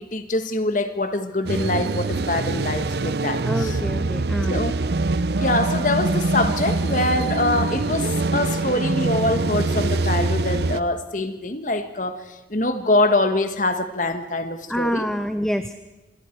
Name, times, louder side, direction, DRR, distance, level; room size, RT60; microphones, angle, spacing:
voice 1, 0.0-3.8 4.5-4.8 5.4-15.1, left 2 dB, 45° left, 9 dB, 1.6 m, -24 dB
sound 1, 1.5-10.8, right 2 dB, 65° right, 0.7 m, -24 dB
voice 2, 3.4-4.6 14.7-15.7, equal, 5° left, 9 dB, 0.6 m, -26 dB
27.0 x 22.5 x 4.6 m, 1.1 s
head